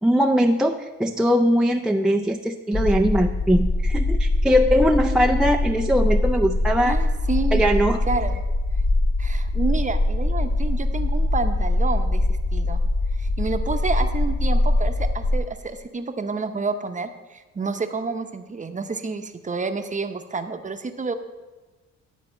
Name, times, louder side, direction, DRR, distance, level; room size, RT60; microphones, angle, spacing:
voice 1, 0.0-7.0 7.5-8.0, equal, ahead, 2 dB, 0.4 m, -20 dB
sound 1, 2.7-15.4, left 2 dB, 30° left, 1.3 m, -22 dB
voice 2, 6.8-8.4 9.2-12.8 13.2-21.1, right 4 dB, 25° right, 7 dB, 0.8 m, -29 dB
11.0 x 4.2 x 7.2 m, 1.2 s
cardioid pair, 90°, 30 cm